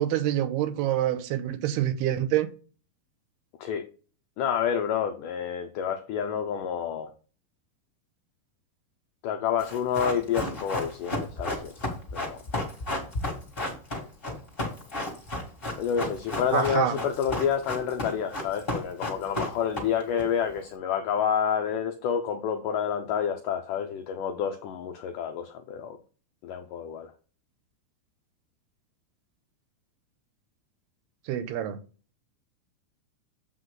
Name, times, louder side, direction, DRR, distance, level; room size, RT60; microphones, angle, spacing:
voice 1, 0.0-2.5 16.5-16.9 31.3-31.8, right 11 dB, 85° right, 2.8 m, -26 dB
voice 2, 4.4-7.1 9.2-12.4 15.8-26.0 26.4-27.1, left 8 dB, 85° left, 1.8 m, -29 dB
Run, 9.6-20.2 20.5-20.6, left 1 dB, 20° left, 1.5 m, -33 dB
7.7 x 5.9 x 3.9 m
omnidirectional pair, 4.5 m